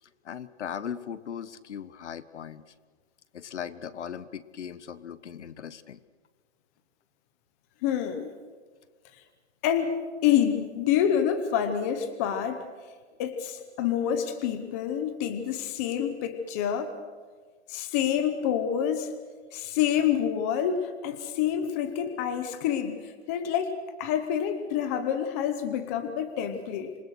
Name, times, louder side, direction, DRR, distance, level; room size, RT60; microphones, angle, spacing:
voice 1, 0.2-2.7 3.3-6.0, left 8 dB, 85° left, 15 dB, 1.4 m, -38 dB
voice 2, 7.8-8.3 9.6-9.9 10.2-12.6 13.2-16.9 17.7-19.1 19.5-23.7 24.0-26.9, left 9 dB, 15° left, 9 dB, 0.8 m, -27 dB
27.0 x 20.5 x 6.4 m, 1.5 s
hypercardioid pair, 180°, 34 cm